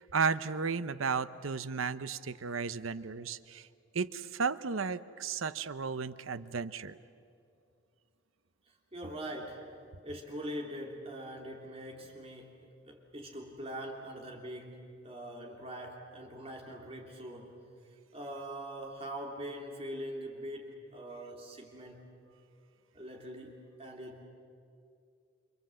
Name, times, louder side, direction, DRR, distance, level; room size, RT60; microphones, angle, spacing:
voice 1, 0.0-3.7 3.9-7.0, right 5 dB, 90° right, 14 dB, 0.8 m, -34 dB
voice 2, 8.9-9.7 10.0-17.6 18.1-22.1 22.9-24.2, equal, 30° right, 1 dB, 3.1 m, -43 dB
29.5 x 25.0 x 7.7 m, 2.5 s
head